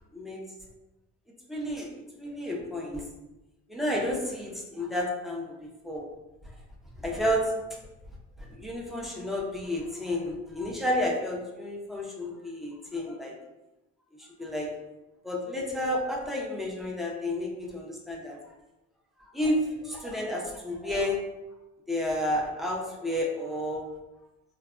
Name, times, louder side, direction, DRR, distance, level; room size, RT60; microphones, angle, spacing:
voice 1, 1.5-1.9 2.2-3.0 3.7-5.5 5.8-6.0 7.0-7.5 8.5-13.3 14.2-14.7 15.2-18.4 19.3-21.2 21.9-23.9, left 1 dB, ahead, -2 dB, 0.6 m, -31 dB
3.1 x 2.2 x 2.4 m, 1.0 s
cardioid pair, 90°, 30 cm